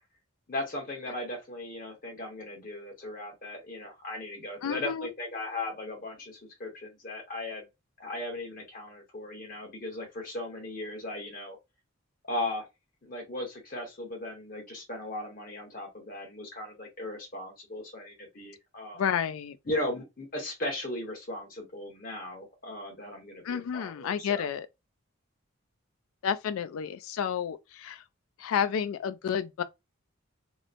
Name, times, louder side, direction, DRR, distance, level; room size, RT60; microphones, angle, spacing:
voice 1, 0.5-7.7 8.0-11.6 12.3-12.7 13.0-19.0 19.7-24.5, left 1 dB, 40° left, 1.0 m, -37 dB
voice 2, 4.6-5.1 18.9-19.6 23.4-24.7 26.2-28.0 28.4-29.6, left 7 dB, 80° left, 0.3 m, -30 dB
2.9 x 2.0 x 2.4 m
head